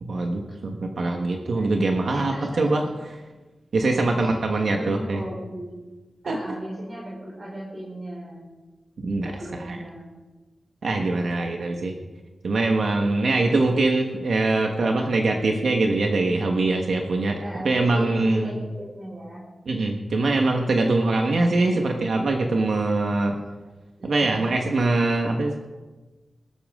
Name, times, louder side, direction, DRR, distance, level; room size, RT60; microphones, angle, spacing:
voice 1, 0.0-2.8 3.7-5.2 6.3-6.4 9.0-9.3 9.6-9.8 10.8-11.9 12.4-17.4 17.6-18.5 19.7-23.4 24.0-25.6, right 2 dB, 75° right, 2 dB, 1.5 m, -23 dB
voice 2, 2.1-2.9 3.9-5.8 6.2-8.4 9.2-10.1 17.4-19.5 24.0-24.5, equal, 35° right, -4 dB, 4.3 m, -36 dB
19.5 x 13.0 x 3.8 m, 1.2 s
wide cardioid pair, 145°, 0 cm